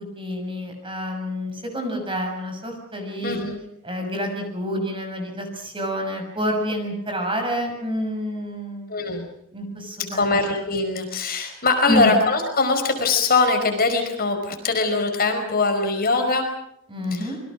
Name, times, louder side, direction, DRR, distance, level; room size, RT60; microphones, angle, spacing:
voice 1, 0.0-3.4 3.8-9.0 9.5-10.4 11.9-12.1 16.9-17.4, equal, 25° right, 4 dB, 6.4 m, -28 dB
voice 2, 3.2-3.6 8.9-9.3 10.1-16.5 17.1-17.3, left 3 dB, 45° left, 5 dB, 5.0 m, -22 dB
27.5 x 23.0 x 6.3 m, 0.75 s
head